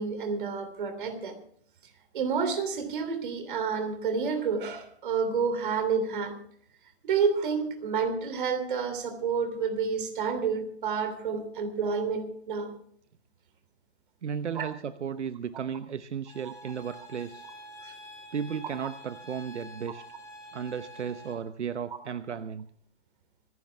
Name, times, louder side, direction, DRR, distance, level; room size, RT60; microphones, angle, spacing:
voice 1, 0.0-1.4 2.1-6.3 7.0-12.7 14.5-14.7 17.8-17.9, right 5 dB, 45° right, 8 dB, 3.3 m, -29 dB
voice 2, 14.2-17.4 18.3-20.0 20.5-22.7, right 7 dB, 85° right, 12 dB, 1.0 m, -34 dB
sound 1, 16.3-21.3, equal, 10° left, 2.4 m, -47 dB
26.0 x 11.0 x 3.5 m, 0.62 s
hypercardioid pair, 160°, 34 cm